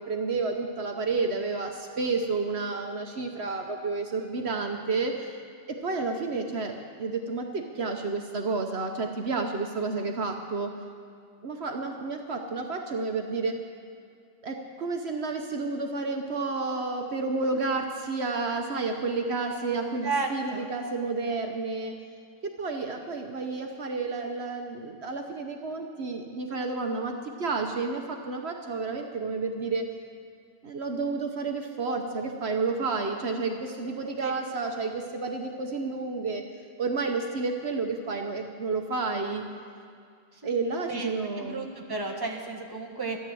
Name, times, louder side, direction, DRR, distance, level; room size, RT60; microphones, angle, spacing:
voice 1, 0.0-5.4 5.7-10.7 11.4-13.6 14.4-21.9 22.4-29.9 30.6-36.4 36.8-39.4 40.4-41.6, right 3 dB, 60° right, 3 dB, 1.2 m, -30 dB
voice 2, 20.0-20.7 34.2-34.3 40.4-40.5 40.9-43.2, right 3 dB, 20° right, 1 dB, 1.4 m, -33 dB
13.5 x 11.0 x 7.7 m, 2.4 s
omnidirectional pair, 1.2 m